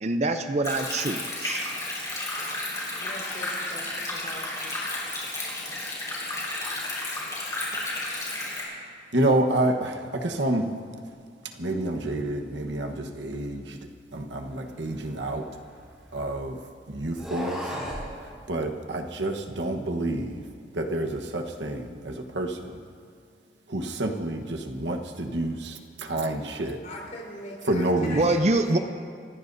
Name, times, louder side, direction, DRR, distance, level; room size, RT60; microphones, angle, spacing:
voice 1, 0.0-1.6 28.1-28.8, right 2 dB, 40° right, 7 dB, 0.6 m, -25 dB
Stream, 0.6-8.6, left 2 dB, 20° left, 4.5 m, -32 dB
voice 2, 3.0-4.8 26.8-28.8, left 1 dB, 45° left, -3 dB, 4.0 m, -41 dB
voice 3, 9.1-10.7 11.6-13.8 14.1-15.5 16.1-16.6 16.9-17.7 18.5-20.4 20.7-22.7 23.7-26.8 27.7-28.2, right 1 dB, 90° right, 4 dB, 1.2 m, -28 dB
sound 1, 14.8-16.3 17.0-18.1, equal, 5° right, 5.2 m, -36 dB
28.0 x 15.5 x 2.7 m, 2.1 s
head